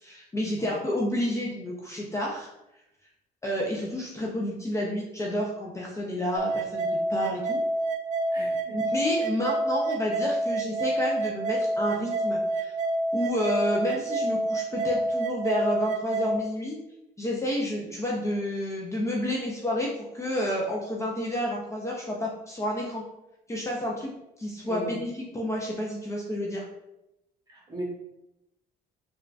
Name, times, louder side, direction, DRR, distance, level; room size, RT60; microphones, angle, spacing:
voice 1, 0.0-2.5 3.4-7.6 8.7-12.7 13.1-16.8 17.2-23.0 23.5-24.1 24.4-26.6, left 1 dB, 15° left, -3 dB, 0.4 m, -30 dB
sound 1, 6.4-16.4, right 2 dB, 45° right, 0.5 m, -28 dB
voice 2, 8.3-8.8 24.6-25.0 27.5-27.8, right 1 dB, 20° right, -3 dB, 1.0 m, -39 dB
3.6 x 2.3 x 2.4 m, 0.89 s
cardioid pair, 110°, 17 cm